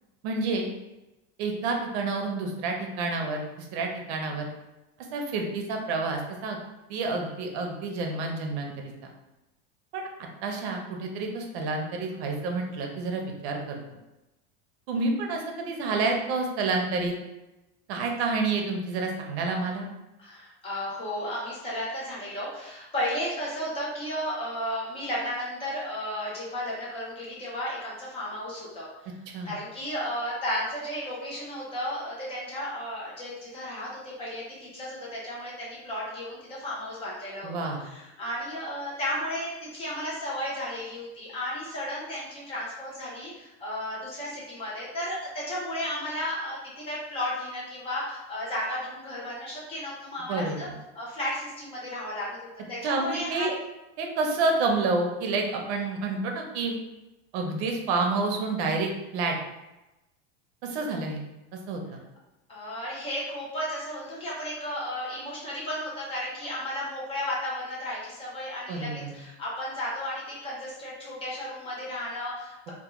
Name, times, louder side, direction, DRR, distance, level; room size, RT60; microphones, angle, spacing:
voice 1, 0.2-0.7 1.4-4.5 5.1-6.6 6.9-8.7 9.9-10.1 10.4-13.8 14.9-17.1 17.9-19.9 29.3-29.5 37.4-37.8 50.3-50.7 52.8-53.6 54.0-56.7 57.3-59.4 60.6-61.2 61.5-61.8 68.7-69.1, right 3 dB, 80° right, 2 dB, 0.6 m, -29 dB
voice 2, 20.2-29.1 29.4-50.7 50.9-52.4 52.7-53.5 62.5-72.7, left 1 dB, 20° left, -6 dB, 0.4 m, -34 dB
2.3 x 2.1 x 2.9 m, 0.99 s
cardioid pair, 165°, 33 cm